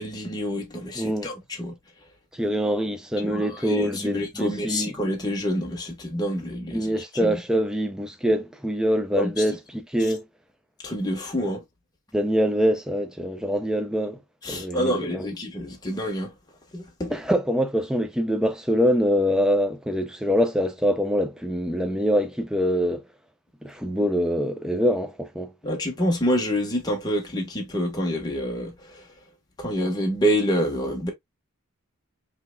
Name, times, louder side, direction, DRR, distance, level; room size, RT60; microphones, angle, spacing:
voice 1, 0.0-1.7 3.2-6.8 9.2-9.3 10.8-11.6 14.4-16.3 16.7-17.1 25.6-28.7 29.6-31.1, equal, 20° left, 1.1 m, -27 dB
voice 2, 0.9-1.3 2.3-4.9 6.7-10.2 11.4-11.6 12.1-14.2 14.5-15.3 17.1-23.0 23.6-25.5, equal, 5° right, 0.5 m, -24 dB
5.6 x 3.4 x 2.2 m
head